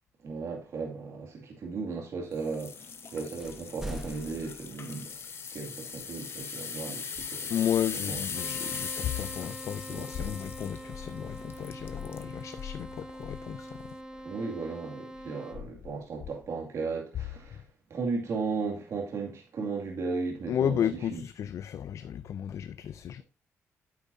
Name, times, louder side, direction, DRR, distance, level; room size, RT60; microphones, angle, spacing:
voice 1, 0.2-5.1 5.5-7.5 8.1-8.2 9.9-10.3 14.2-17.6 17.9-20.8 21.1-21.2, right 4 dB, 65° right, 2.3 m, -35 dB
sound 1, 2.4-12.3 12.8-13.0 13.6-13.7, left 6 dB, 50° left, 0.9 m, -40 dB
sound 2, 3.4-5.0 5.9-6.1, equal, 5° right, 1.1 m, -41 dB
voice 2, 7.5-14.0 17.5-17.6 20.5-23.2, left 9 dB, 65° left, 0.4 m, -33 dB
sound 3, 8.3-15.5, right 1 dB, 20° right, 2.7 m, -44 dB
9.1 x 8.2 x 2.7 m
cardioid pair, 90°, 5 cm